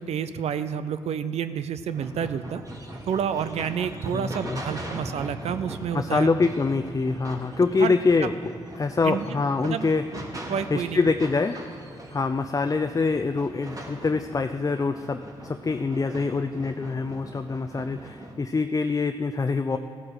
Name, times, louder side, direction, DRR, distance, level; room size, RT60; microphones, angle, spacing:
voice 1, 0.0-2.6 3.1-6.3 7.8-8.0 9.0-9.4 9.6-9.9 10.5-11.0, right 8 dB, 70° right, 12 dB, 0.6 m, -29 dB
sound 1, 1.9-18.4, right 1 dB, 35° right, 2.5 m, -40 dB
voice 2, 4.1-4.6 5.9-8.3 8.7-10.1 10.7-11.6 12.1-19.8, left 4 dB, 30° left, 7 dB, 0.5 m, -25 dB
15.0 x 8.7 x 6.5 m, 2.4 s
supercardioid pair, 50°, 11 cm